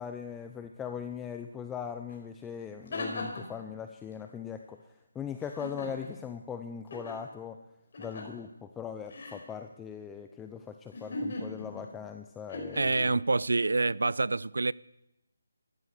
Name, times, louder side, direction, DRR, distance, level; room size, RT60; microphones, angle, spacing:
voice 1, 0.0-7.6 8.0-13.2, left 7 dB, 10° left, 0.6 m, -40 dB
sound 1, 2.1-2.2 2.6-3.6 5.4-6.3 6.9-7.2 7.9-8.4 9.1-9.4 10.9-11.9 12.5-13.0, left 2 dB, 45° left, 4.8 m, -38 dB
voice 2, 12.7-14.7, right 3 dB, 80° right, 0.4 m, -27 dB
14.0 x 13.0 x 6.7 m
figure-of-eight pair, 165°, 0 cm